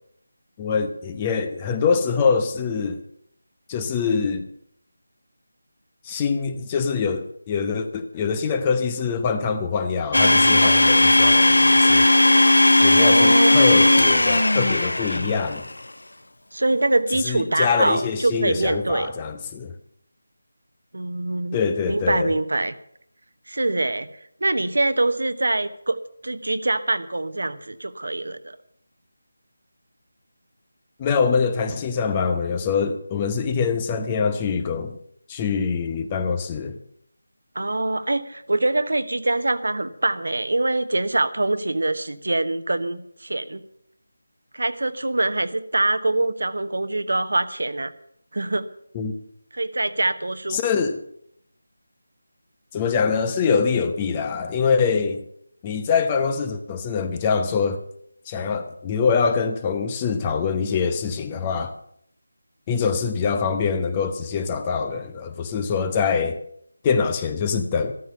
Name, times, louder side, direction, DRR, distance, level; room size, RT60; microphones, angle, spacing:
voice 1, 0.6-3.0 3.7-4.5 6.0-12.1 12.8-15.7 17.2-19.7 21.5-22.3 31.0-35.0 35.3-36.8 48.9-49.1 50.5-51.0 52.7-55.2 55.6-57.8 58.3-61.7 62.7-66.4 66.8-67.9, left 5 dB, 15° left, 0.8 m, -24 dB
Domestic sounds home sounds, 10.1-15.6, left 2 dB, 65° left, 0.5 m, -16 dB
voice 2, 12.8-13.6 16.5-19.1 20.9-21.6 21.9-22.7 23.5-24.1 24.4-28.6 37.5-43.6 44.5-47.9 48.3-48.7 49.5-50.6, right 2 dB, 55° right, 1.0 m, -24 dB
14.0 x 13.5 x 5.7 m
figure-of-eight pair, 160°, 0 cm